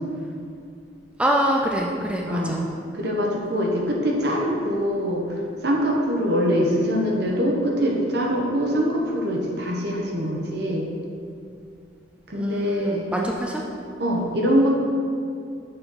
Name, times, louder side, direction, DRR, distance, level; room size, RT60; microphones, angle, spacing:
voice 1, 1.2-2.6 6.5-6.6 12.3-13.6, equal, 5° right, -1 dB, 0.3 m, -25 dB
voice 2, 2.2-2.5 2.9-5.2 5.6-10.8 12.3-13.1 14.0-14.7, equal, 60° right, -1 dB, 1.0 m, -23 dB
6.7 x 4.2 x 3.8 m, 2.4 s
head